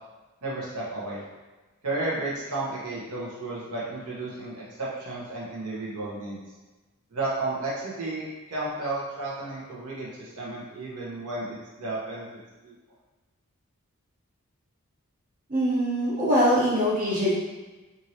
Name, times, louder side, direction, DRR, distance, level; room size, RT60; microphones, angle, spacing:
voice 1, 0.4-1.2 1.8-6.4 7.1-12.2 12.6-12.7, right 2 dB, 80° right, -6 dB, 0.8 m, -33 dB
voice 2, 15.5-17.3, equal, 40° right, -8 dB, 0.9 m, -23 dB
3.0 x 2.6 x 2.7 m, 1.2 s
head